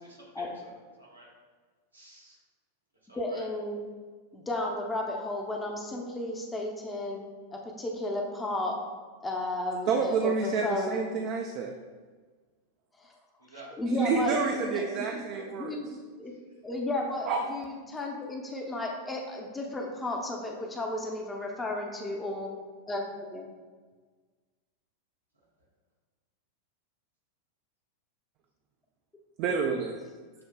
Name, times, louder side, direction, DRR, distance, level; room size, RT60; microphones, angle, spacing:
voice 1, 0.0-1.3 1.9-2.4 3.1-3.5 13.4-13.7, right 2 dB, 80° right, -4 dB, 1.1 m, -51 dB
voice 2, 3.1-3.8 4.3-7.2 7.5-8.8 9.2-11.0 13.0-13.1 13.7-15.2 15.5-16.3 16.6-22.5 22.9-23.5, left 2 dB, 15° left, 0 dB, 0.6 m, -33 dB
voice 3, 9.9-11.7 14.0-15.8 17.3-17.4 29.4-30.0, right 5 dB, 40° right, 2 dB, 0.3 m, -29 dB
6.6 x 2.7 x 2.2 m, 1.4 s
figure-of-eight pair, 90°, 0 cm